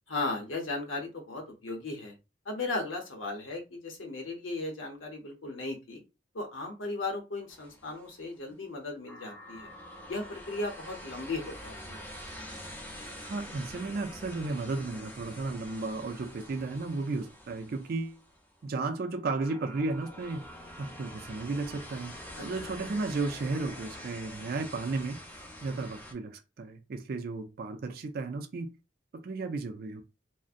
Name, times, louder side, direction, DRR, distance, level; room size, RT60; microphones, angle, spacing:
voice 1, 0.1-2.1 2.5-6.0 6.3-9.7 10.1-12.0 22.4-22.5, left 2 dB, 90° left, 0.8 m, -36 dB
sound 1, 7.5-8.3 9.1-18.6 19.4-26.1, equal, 10° left, 0.5 m, -46 dB
voice 2, 13.2-18.2 18.6-20.4 20.8-25.2 25.6-28.7 29.1-30.0, right 3 dB, 50° right, 0.4 m, -34 dB
2.5 x 2.0 x 2.4 m
head